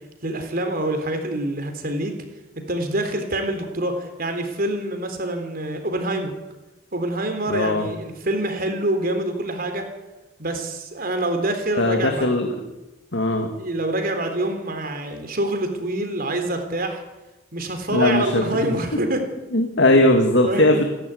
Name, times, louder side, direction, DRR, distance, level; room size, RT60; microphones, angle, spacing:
voice 1, 0.2-2.1 2.6-6.3 6.9-9.9 10.4-12.3 13.6-17.0 17.5-19.2 20.4-20.8, right 1 dB, 50° right, 5 dB, 3.7 m, -26 dB
voice 2, 7.5-7.8 11.8-12.5 13.1-13.5 17.9-18.7 19.5-20.8, left 1 dB, 65° left, 3 dB, 2.4 m, -19 dB
28.0 x 12.0 x 9.5 m, 1.0 s
head